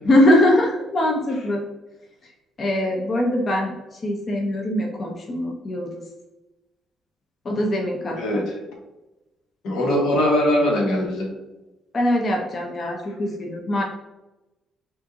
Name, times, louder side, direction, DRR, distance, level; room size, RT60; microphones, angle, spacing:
voice 1, 0.1-1.6 2.6-6.0 7.4-8.4 11.9-13.8, left 1 dB, 45° left, 0 dB, 0.7 m, -22 dB
voice 2, 8.2-8.6 9.6-11.3 13.1-13.2, left 1 dB, 80° left, 0 dB, 1.2 m, -21 dB
5.4 x 2.5 x 3.8 m, 1.0 s
cardioid pair, 90°, 0 cm